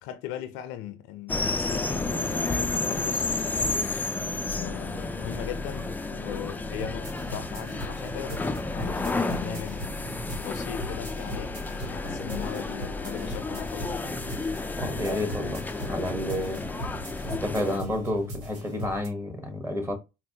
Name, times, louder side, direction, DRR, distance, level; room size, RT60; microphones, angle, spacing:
voice 1, 0.0-3.5 4.5-9.8 10.4-14.0, left 11 dB, 75° left, 0.5 m, -39 dB
sound 1, 1.3-17.8, left 3 dB, 10° left, 0.3 m, -31 dB
sound 2, 6.7-19.1, right 1 dB, 85° right, 1.2 m, -40 dB
voice 2, 14.8-16.7 17.2-19.9, left 1 dB, 10° right, 1.1 m, -30 dB
4.0 x 2.1 x 2.7 m
supercardioid pair, 85°, 21 cm